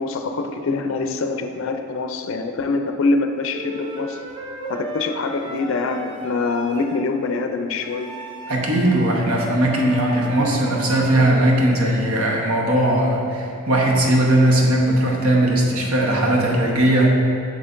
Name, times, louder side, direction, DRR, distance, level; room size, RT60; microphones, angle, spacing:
voice 1, 0.0-4.2 4.7-8.1, left 3 dB, 65° left, 6 dB, 0.4 m, -24 dB
Wind instrument woodwind instrument, 3.5-7.0 7.8-11.6, right 1 dB, 20° right, 0.4 m, -35 dB
voice 2, 8.5-17.1, right 1 dB, 80° right, -1 dB, 1.0 m, -18 dB
7.9 x 6.5 x 2.5 m, 2.5 s
head